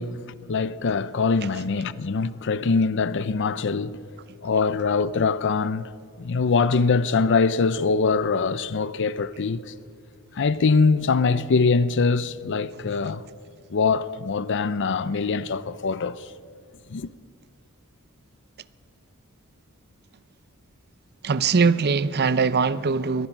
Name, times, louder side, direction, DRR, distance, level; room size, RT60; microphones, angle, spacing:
voice 1, 0.0-4.0 4.4-5.9 6.2-9.7 10.3-13.2 13.7-16.3 16.9-17.1, left 4 dB, 55° left, 0.6 m, -23 dB
voice 2, 21.2-23.3, right 5 dB, 45° right, 0.6 m, -21 dB
22.5 x 19.0 x 6.0 m
head